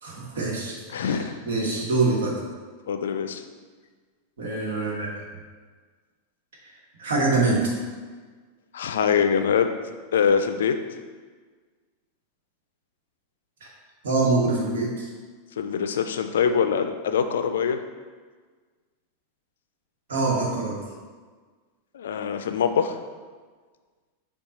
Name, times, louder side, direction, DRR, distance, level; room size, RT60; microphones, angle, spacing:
voice 1, 0.0-2.3 4.4-5.1 7.0-7.7 14.0-15.1 20.1-20.8, right 3 dB, 70° right, -2 dB, 1.1 m, -24 dB
voice 2, 0.9-1.4 2.9-3.4 8.7-9.7 10.1-10.7 15.6-17.8 21.9-23.0, left 7 dB, 70° left, 8 dB, 0.3 m, -23 dB
5.5 x 2.3 x 3.8 m, 1.5 s
figure-of-eight pair, 90°, 0 cm